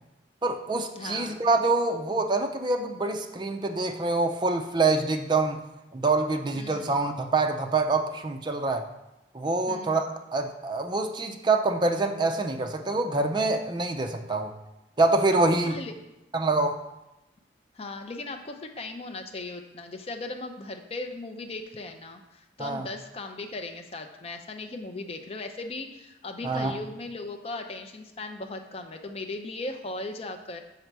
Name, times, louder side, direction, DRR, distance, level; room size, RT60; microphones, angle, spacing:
voice 1, 0.4-5.6 5.9-8.9 9.3-10.0 10.3-14.5 15.0-15.8 16.3-16.8 22.6-22.9 26.4-26.7, right 3 dB, 25° right, 5 dB, 0.4 m, -25 dB
voice 2, 0.9-1.4 6.5-6.9 9.7-10.0 15.6-15.9 17.7-30.6, left 2 dB, 35° left, 5 dB, 0.5 m, -38 dB
5.5 x 5.0 x 4.6 m, 0.95 s
head